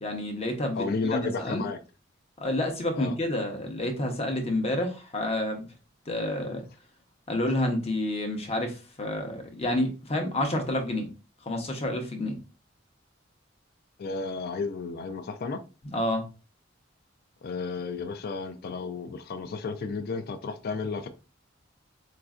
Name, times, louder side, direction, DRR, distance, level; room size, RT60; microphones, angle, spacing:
voice 1, 0.0-0.8 1.1-1.7 2.4-5.7 6.1-6.6 7.3-11.1 11.5-12.3 15.9-16.3, left 1 dB, 30° left, 0.7 m, -29 dB
voice 2, 0.7-1.8 2.9-3.1 14.0-15.6 17.4-21.1, left 4 dB, 50° left, 0.4 m, -32 dB
4.1 x 2.5 x 2.4 m
head